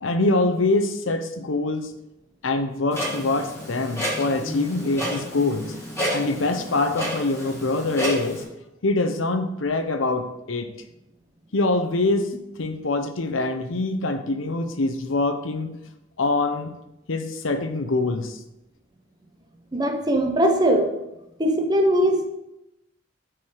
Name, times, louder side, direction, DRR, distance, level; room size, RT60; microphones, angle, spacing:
voice 1, 0.0-1.9 2.4-5.7 6.1-8.4 8.8-10.7 11.5-12.3 12.6-15.7 16.2-16.7 17.1-18.4, left 2 dB, 85° left, 7 dB, 0.7 m, -24 dB
Clock, 2.9-8.4, equal, 15° left, 2.0 m, -30 dB
voice 2, 19.7-20.9 21.4-22.3, right 1 dB, 20° right, 4 dB, 0.7 m, -20 dB
9.5 x 4.7 x 4.9 m, 0.90 s
head